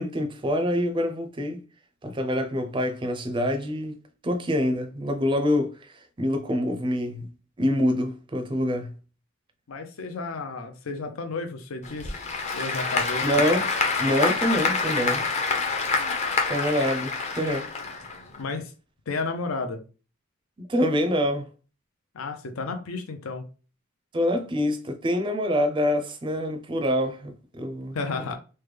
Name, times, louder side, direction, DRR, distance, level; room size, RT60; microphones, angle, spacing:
voice 1, 0.0-1.6 2.0-3.9 4.2-7.3 7.6-8.9 13.2-13.7 14.0-15.2 16.5-17.7 20.6-21.5 24.1-28.0, equal, 25° right, 0.4 m, -26 dB
voice 2, 9.7-12.2 12.5-13.3 18.4-18.7 19.1-19.8 22.1-23.5 27.9-28.3, left 3 dB, 85° left, 0.5 m, -32 dB
Applause / Crowd, 11.8-18.4, left 4 dB, 35° left, 0.6 m, -27 dB
3.2 x 2.1 x 3.2 m
head